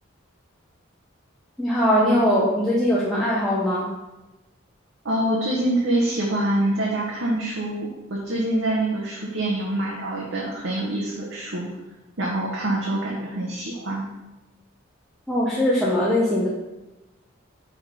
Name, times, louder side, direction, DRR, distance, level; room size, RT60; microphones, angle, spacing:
voice 1, 1.6-3.9 15.3-16.5, equal, ahead, -8 dB, 0.8 m, -21 dB
voice 2, 5.0-11.7 12.2-14.1, right 1 dB, 70° right, -4 dB, 1.0 m, -25 dB
6.3 x 3.6 x 5.4 m, 1.1 s
head